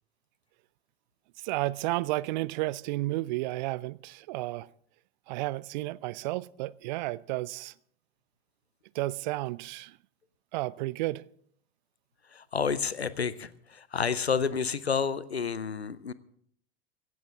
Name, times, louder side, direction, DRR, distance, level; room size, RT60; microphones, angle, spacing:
voice 1, 1.4-4.7 5.3-7.7 8.9-10.0 10.5-11.2, right 19 dB, 45° right, 0.5 m, -32 dB
voice 2, 12.3-16.1, left 6 dB, 85° left, 0.6 m, -30 dB
17.0 x 15.5 x 3.6 m
figure-of-eight pair, 80°, 31 cm